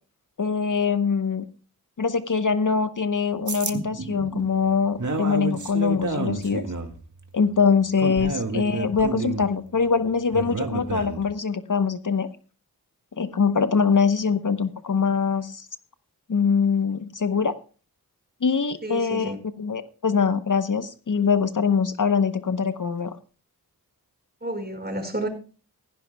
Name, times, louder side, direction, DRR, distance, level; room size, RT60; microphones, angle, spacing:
voice 1, 0.4-1.5 2.0-6.6 7.3-12.3 13.2-15.7 16.3-17.5 18.4-23.1, left 5 dB, 55° left, 11 dB, 0.9 m, -23 dB
sound 1, 3.5-11.4, right 3 dB, 50° right, 1.9 m, -30 dB
voice 2, 18.8-19.4 24.4-25.3, right 1 dB, 25° right, 6 dB, 5.0 m, -30 dB
16.0 x 15.5 x 2.2 m, 0.36 s
cardioid pair, 45°, 37 cm